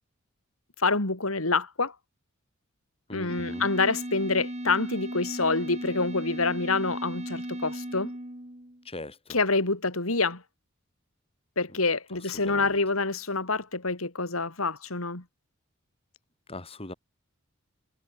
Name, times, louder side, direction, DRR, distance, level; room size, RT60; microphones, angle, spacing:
voice 1, 0.8-1.9 3.1-8.1 9.3-10.4 11.6-15.2, left 3 dB, 85° left, 3.7 m, -27 dB
voice 2, 3.1-3.7 8.8-9.4 11.7-11.8 12.2-12.8 16.5-16.9, left 2 dB, 30° left, 4.9 m, -41 dB
sound 1, 3.3-8.8, right 1 dB, 35° right, 4.7 m, -36 dB
head